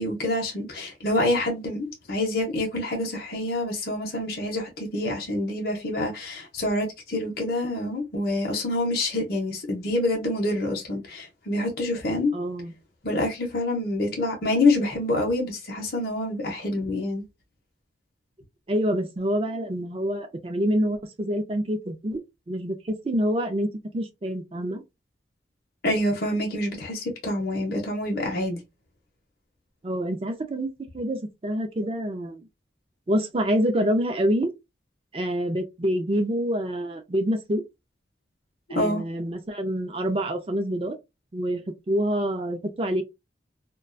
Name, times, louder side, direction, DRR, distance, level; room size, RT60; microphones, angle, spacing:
voice 1, 0.0-12.3 13.0-17.2 25.8-28.6 38.8-39.0, left 1 dB, 50° left, 0.6 m, -26 dB
voice 2, 12.3-12.7 18.7-22.2 22.5-23.7 23.9-24.8 29.8-32.4 33.1-34.5 35.1-37.6 38.7-41.0 41.3-41.6 41.9-43.0, equal, 30° right, 0.4 m, -26 dB
2.3 x 2.2 x 2.4 m
head